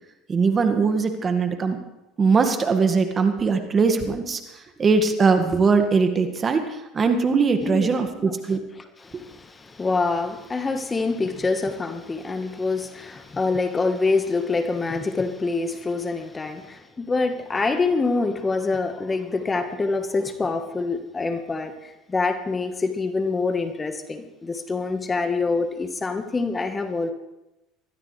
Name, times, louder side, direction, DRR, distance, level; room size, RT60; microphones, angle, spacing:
voice 1, 0.3-1.8 2.2-4.4 4.8-6.6 6.9-8.6 9.1-9.2, right 4 dB, 30° right, 6 dB, 1.9 m, -21 dB
voice 2, 9.0-27.1, left 3 dB, 25° left, 8 dB, 1.4 m, -26 dB
21.5 x 14.5 x 3.3 m, 0.96 s
hypercardioid pair, 75°, 0 cm